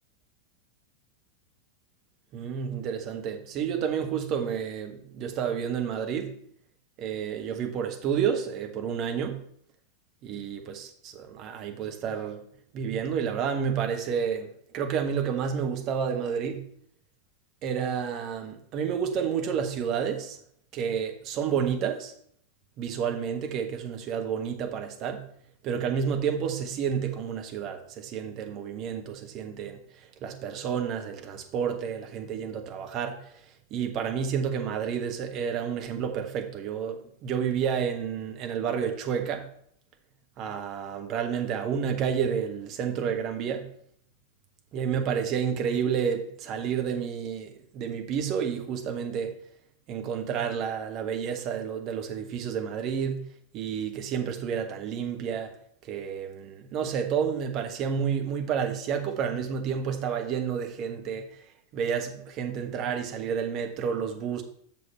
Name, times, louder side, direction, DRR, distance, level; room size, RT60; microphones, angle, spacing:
voice 1, 2.3-6.3 7.0-9.4 10.2-12.5 12.7-16.7 17.6-20.4 20.7-22.1 22.8-25.2 25.6-29.8 30.2-33.3 33.7-39.5 40.4-43.7 44.7-49.4 49.9-53.2 53.5-55.5 55.9-61.3 61.7-64.4, right 7 dB, 35° right, 1.2 m, -30 dB
7.5 x 6.4 x 4.3 m
figure-of-eight pair, 90°, 0 cm